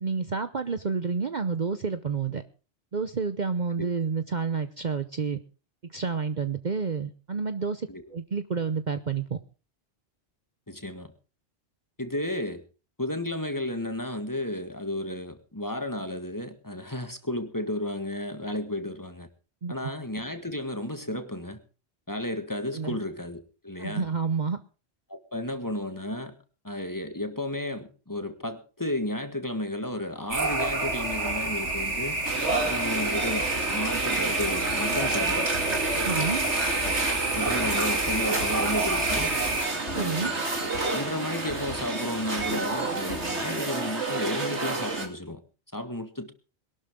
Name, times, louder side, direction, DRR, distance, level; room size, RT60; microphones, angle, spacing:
voice 1, 0.0-2.4 2.9-5.4 5.9-9.4 19.6-19.7 22.7-23.0 23.8-24.6 36.0-36.4 39.9-40.3, right 5 dB, 45° right, 10 dB, 0.9 m, -29 dB
voice 2, 10.7-11.1 12.0-12.6 13.0-19.3 19.7-21.6 22.1-24.1 25.1-26.4 26.6-32.2 32.6-35.5 36.0-36.3 37.3-39.3 39.9-40.3 40.6-45.4 45.7-46.3, left 1 dB, 15° left, 8 dB, 1.7 m, -33 dB
sound 1, 30.3-39.7, right 2 dB, 90° right, 2.9 m, -28 dB
sound 2, 32.2-45.1, right 3 dB, 75° right, 3.0 m, -30 dB
sound 3, 34.6-43.6, left 2 dB, 75° left, 2.9 m, -43 dB
21.5 x 12.0 x 3.7 m, 0.34 s
omnidirectional pair, 1.2 m